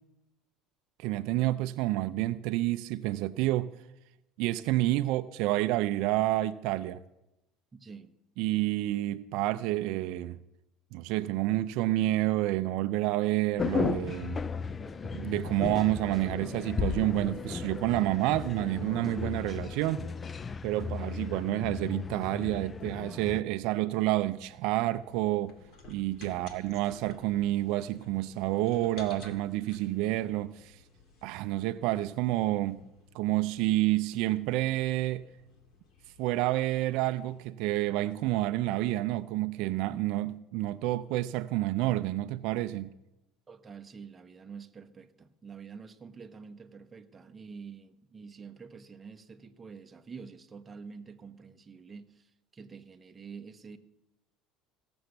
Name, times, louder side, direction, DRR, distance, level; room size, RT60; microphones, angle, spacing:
voice 1, 1.0-3.7 4.4-7.0 8.4-10.4 10.9-14.4 15.1-20.1 20.6-25.5 25.9-30.8 31.2-32.8 33.1-35.2 36.2-42.9, right 16 dB, 70° right, 0.5 m, -29 dB
voice 2, 7.7-8.1 43.5-53.8, right 5 dB, 20° right, 0.9 m, -47 dB
sound 1, 13.6-23.4, left 5 dB, 20° left, 0.4 m, -35 dB
sound 2, 24.0-37.4, left 4 dB, 55° left, 2.4 m, -55 dB
16.0 x 7.0 x 7.8 m
cardioid pair, 140°, 0 cm